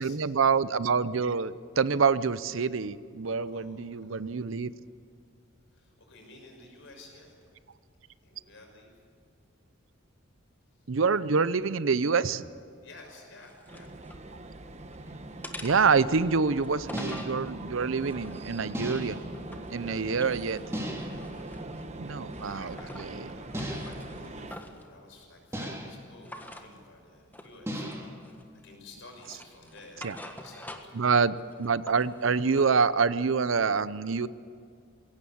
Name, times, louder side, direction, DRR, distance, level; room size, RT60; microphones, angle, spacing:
voice 1, 0.0-4.7 10.9-12.5 15.6-19.2 19.7-20.6 22.0-23.3 30.0-30.1 31.0-34.3, right 5 dB, 70° right, 16 dB, 0.6 m, -26 dB
voice 2, 3.5-4.4 5.7-7.4 8.2-9.0 10.7-10.9 12.8-13.9 19.8-20.4 21.1-31.3, left 2 dB, 65° left, 1 dB, 6.1 m, -52 dB
sound 1, 13.1-14.2 14.7-15.0 15.4-17.4 18.0-19.8 20.1-21.9 22.3-23.1 23.4-24.9 26.2-26.7 27.3-27.6 27.9-28.6 29.1-31.1 31.4-32.7, left 1 dB, 10° left, 1.5 m, -46 dB
sound 2, 13.7-24.6, right 2 dB, 35° right, 1.1 m, -42 dB
sound 3, 15.1-15.2 16.9-17.5 18.7-19.3 20.7-21.3 23.5-24.2 25.5-26.1 27.7-28.2, equal, 15° right, 2.8 m, -36 dB
22.0 x 17.5 x 8.6 m, 2.3 s
head